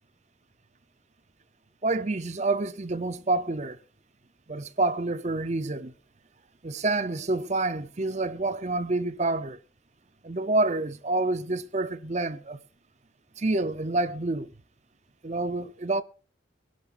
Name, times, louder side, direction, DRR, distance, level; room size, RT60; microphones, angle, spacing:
voice 1, 1.8-3.8 4.5-5.9 6.6-9.6 10.2-12.6 13.4-14.5 15.2-16.0, right 2 dB, 35° right, 0.7 m, -28 dB
21.0 x 11.5 x 2.6 m
head